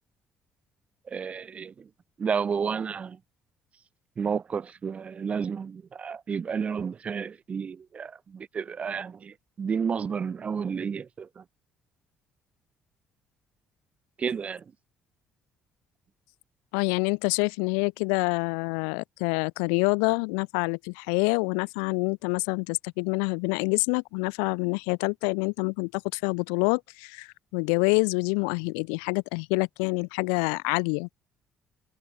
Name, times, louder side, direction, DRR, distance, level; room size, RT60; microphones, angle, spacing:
voice 1, 1.1-1.9 2.2-3.2 4.2-11.4 14.2-14.6, right 6 dB, 40° right, 1.2 m, -31 dB
voice 2, 16.7-31.1, left 40 dB or more, 75° left, 0.9 m, -27 dB
hypercardioid pair, 50°, 3 cm